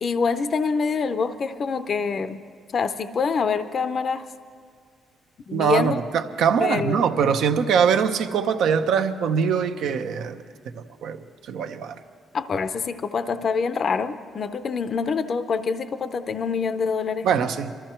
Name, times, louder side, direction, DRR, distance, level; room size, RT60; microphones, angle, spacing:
voice 1, 0.0-2.4 2.7-4.3 5.5-6.0 6.6-7.1 12.3-17.3, left 5 dB, 50° left, 11 dB, 0.6 m, -25 dB
voice 2, 5.5-10.4 10.7-11.9 17.2-17.7, right 7 dB, 80° right, 7 dB, 0.8 m, -23 dB
23.0 x 13.5 x 4.4 m, 2.1 s
cardioid pair, 90°, 0 cm